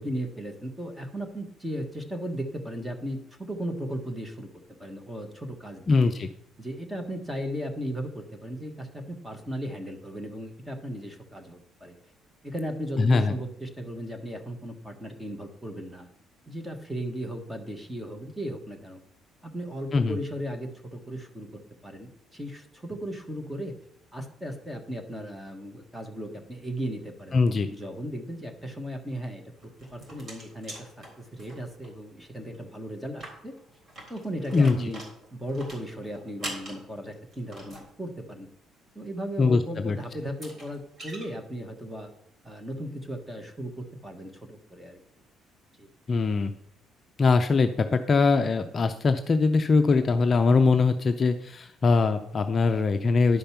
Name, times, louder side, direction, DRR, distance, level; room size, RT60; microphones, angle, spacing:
voice 1, 0.0-4.5 4.8-6.1 6.6-12.0 12.4-16.1 16.5-19.0 19.4-23.8 24.1-27.4 27.7-33.5 34.1-35.0 35.3-38.5 38.9-42.1 42.4-45.0 45.8-45.9, equal, 5° right, 5 dB, 1.3 m, -36 dB
voice 2, 5.9-6.3 13.0-13.4 19.9-20.2 27.3-27.7 34.5-34.8 39.4-40.0 46.1-46.5 47.2-53.4, left 4 dB, 30° left, 7 dB, 0.5 m, -22 dB
sound 1, 29.6-31.9 32.2-32.3 32.6-32.7 33.1-37.9 39.7-39.8 40.2-41.3, right 1 dB, 30° right, 3.7 m, -43 dB
11.0 x 5.2 x 5.8 m, 0.74 s
cardioid pair, 145°, 0 cm